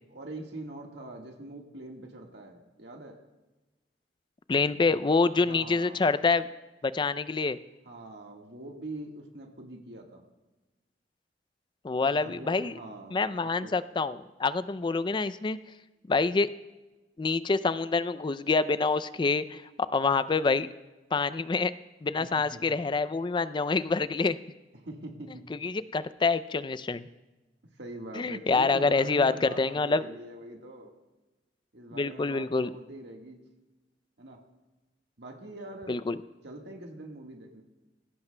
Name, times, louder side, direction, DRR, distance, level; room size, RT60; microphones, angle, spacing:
voice 1, 0.1-3.2 4.9-5.0 5.3-6.1 7.8-10.2 12.0-13.2 13.6-13.7 22.2-22.7 24.8-25.4 27.8-30.9 31.7-33.4 34.2-34.4 35.2-36.0 36.4-37.6, right 2 dB, 70° right, 1 dB, 1.6 m, -43 dB
voice 2, 4.5-6.5 6.8-7.6 11.8-12.7 13.1-15.6 16.1-16.5 17.2-19.6 19.9-20.7 21.1-21.7 22.0-24.4 25.5-27.1 28.2-30.0 31.9-32.7 35.9-36.2, left 4 dB, 25° left, 14 dB, 0.4 m, -26 dB
19.5 x 16.5 x 2.2 m, 1.1 s
head